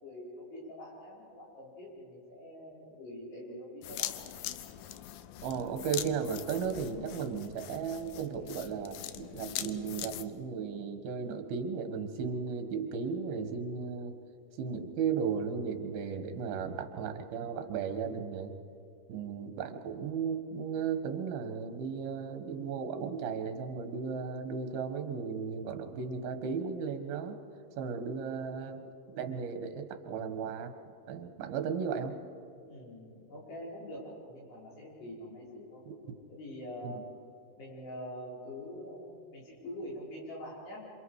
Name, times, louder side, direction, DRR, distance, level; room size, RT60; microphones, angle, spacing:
voice 1, 0.0-4.2 19.5-19.6 32.7-35.8 36.3-37.0 37.6-40.8, left 1 dB, 70° left, -5 dB, 7.1 m, -45 dB
sound 1, 3.8-10.2, left 13 dB, 85° left, 2.1 m, -41 dB
voice 2, 5.4-14.2 14.6-18.5 19.1-27.4 27.8-28.9 29.1-30.7 31.1-32.2 35.9-36.0 36.8-37.0, right 6 dB, 65° right, 7 dB, 3.0 m, -35 dB
27.5 x 26.0 x 4.8 m, 2.5 s
omnidirectional pair, 5.0 m